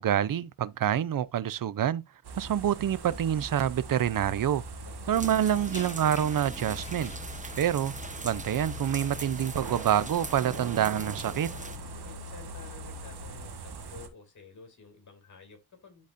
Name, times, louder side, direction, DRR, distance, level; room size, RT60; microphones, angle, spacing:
voice 1, 0.0-2.0 2.4-4.6 5.1-7.1 7.6-7.9 8.2-11.5, right 10 dB, 60° right, 0.6 m, -27 dB
sound 1, 2.2-14.1, right 2 dB, 80° right, 1.4 m, -41 dB
voice 2, 4.8-5.1 12.0-16.0, left 4 dB, 50° left, 2.6 m, -51 dB
sound 2, 5.1-10.3, left 3 dB, 20° left, 0.7 m, -50 dB
sound 3, 5.1-11.8, right 3 dB, 20° right, 0.9 m, -42 dB
11.5 x 4.1 x 2.6 m
wide cardioid pair, 90°, 38 cm